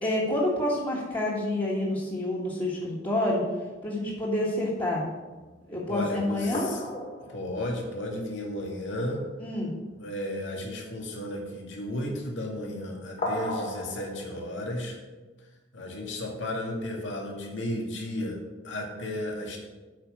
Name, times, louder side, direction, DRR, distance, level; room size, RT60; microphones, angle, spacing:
voice 1, 0.0-3.4 3.8-5.1 5.7-6.7 9.4-9.7, left 1 dB, 25° left, -8 dB, 1.7 m, -28 dB
sound 1, 5.4-5.5 6.0-6.1 6.5-8.8 9.1-9.2 9.5-9.7 13.2-14.2, left 1 dB, 40° left, 2.4 m, -36 dB
voice 2, 5.9-6.8 7.3-9.2 10.0-15.0 15.7-18.4 18.6-19.6, left 1 dB, 80° left, 0 dB, 2.1 m, -33 dB
8.7 x 5.6 x 7.1 m, 1.2 s
head